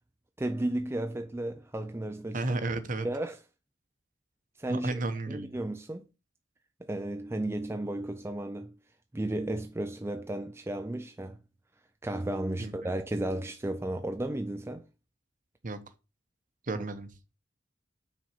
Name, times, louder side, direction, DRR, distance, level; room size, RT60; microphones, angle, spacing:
voice 1, 0.4-2.4 3.0-3.4 4.6-5.0 5.3-6.0 6.8-8.8 9.1-11.4 12.0-14.8 16.7-16.8, right 1 dB, 15° right, 0.4 m, -33 dB
voice 2, 2.3-3.1 4.7-5.6 12.6-12.9 15.6-15.8 16.6-17.1, right 2 dB, 45° right, 0.9 m, -33 dB
6.0 x 4.2 x 5.8 m
head